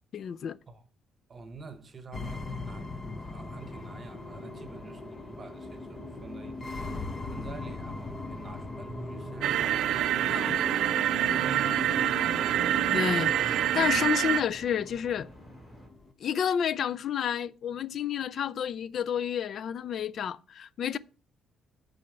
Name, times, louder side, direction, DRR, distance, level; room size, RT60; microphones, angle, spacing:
voice 1, 0.1-0.6 10.3-10.6 12.9-15.3 16.2-21.0, left 8 dB, 55° left, 0.3 m, -30 dB
voice 2, 1.3-12.6, right 4 dB, 35° right, 1.0 m, -48 dB
sound 1, 2.1-16.1, left 3 dB, 30° left, 0.8 m, -40 dB
sound 2, 3.2-15.9, equal, 5° left, 2.5 m, -44 dB
sound 3, 9.4-14.4, right 12 dB, 80° right, 0.3 m, -26 dB
8.4 x 4.1 x 5.7 m
cardioid pair, 130°, 0 cm